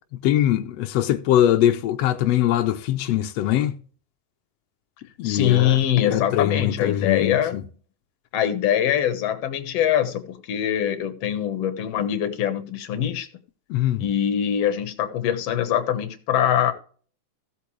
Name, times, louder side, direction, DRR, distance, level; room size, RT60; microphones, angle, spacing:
voice 1, 0.2-3.7 5.2-5.8 6.1-7.6 13.7-14.0, left 12 dB, 80° left, 1.4 m, -22 dB
voice 2, 5.2-7.7 8.3-13.3 14.0-16.7, left 10 dB, 60° left, 1.8 m, -23 dB
15.0 x 8.3 x 3.2 m
omnidirectional pair, 3.9 m